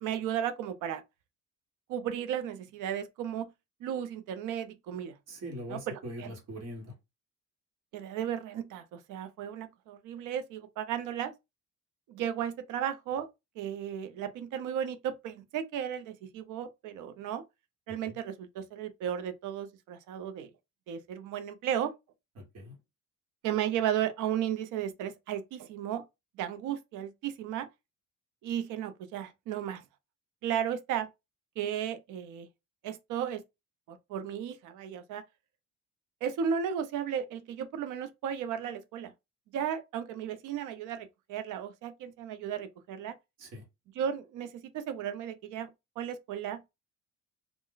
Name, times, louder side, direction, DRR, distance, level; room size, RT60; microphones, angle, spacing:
voice 1, 0.0-1.0 1.9-3.5 3.8-5.1 5.7-6.3 7.9-11.3 12.1-13.3 13.6-17.4 17.9-20.5 20.9-21.9 23.4-26.0 26.4-27.7 28.4-29.8 30.4-31.1 31.6-32.5 32.8-33.4 33.9-35.2 36.2-39.1 39.5-43.1 44.0-45.7 46.0-46.6, right 9 dB, 80° right, 0.5 m, -34 dB
voice 2, 5.3-6.9 18.0-18.2 22.5-22.8 43.4-43.6, equal, 55° right, 1.3 m, -42 dB
2.4 x 2.1 x 3.8 m
cardioid pair, 160°, 30 cm